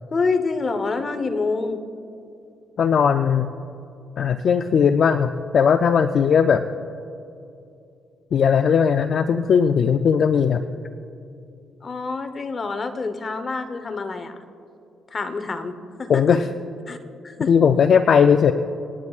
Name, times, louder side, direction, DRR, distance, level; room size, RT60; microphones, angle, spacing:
voice 1, 0.1-1.9 11.8-14.4 15.1-16.4 16.9-17.0 17.2-17.5, left 4 dB, 35° left, 9 dB, 0.9 m, -27 dB
voice 2, 2.8-3.5 4.2-6.6 8.3-10.6 16.1-16.4 17.5-18.5, left 7 dB, 55° left, 9 dB, 0.4 m, -18 dB
26.5 x 9.6 x 2.4 m, 2.7 s
cardioid pair, 90°, 0 cm